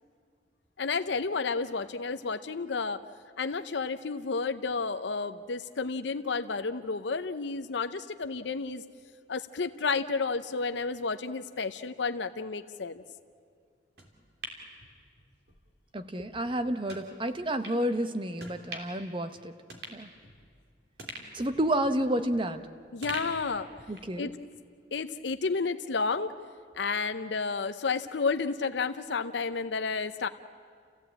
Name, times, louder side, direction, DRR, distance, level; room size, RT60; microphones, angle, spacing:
voice 1, 0.8-3.0 3.4-8.8 9.3-13.0 22.9-23.7 24.2-24.3 24.9-26.3 26.7-30.3, left 4 dB, 70° left, 10 dB, 0.7 m, -31 dB
sound 1, 14.0-15.6 16.0-16.1 16.9-17.1 17.6-17.8 18.4-19.1 19.4-19.5 19.7-20.6 21.0-22.6 23.0-24.2 24.5-24.6, right 2 dB, 60° right, 3.1 m, -44 dB
voice 2, 15.9-19.5 19.9-20.1 21.3-22.6 23.9-24.3, right 1 dB, 25° right, 10 dB, 0.9 m, -30 dB
29.0 x 15.5 x 8.7 m, 2.1 s
head